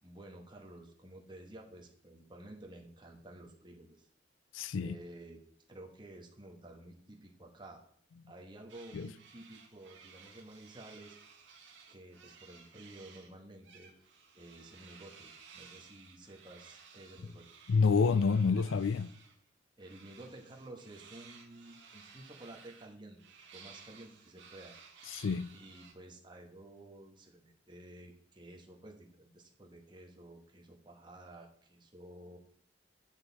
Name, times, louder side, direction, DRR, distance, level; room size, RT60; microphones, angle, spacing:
voice 1, 0.0-4.1 4.8-5.4 5.7-7.8 8.3-11.2 11.9-13.9 14.3-17.4 19.8-23.2 23.5-24.8 25.5-32.4, right 1 dB, 25° right, 1.5 m, -52 dB
voice 2, 4.5-5.0 8.9-9.1 17.7-19.1 25.1-25.5, left 5 dB, 85° left, 0.4 m, -28 dB
sound 1, 8.7-13.3 13.6-19.4 19.8-25.9, right 6 dB, 75° right, 1.9 m, -57 dB
9.7 x 6.6 x 4.2 m
head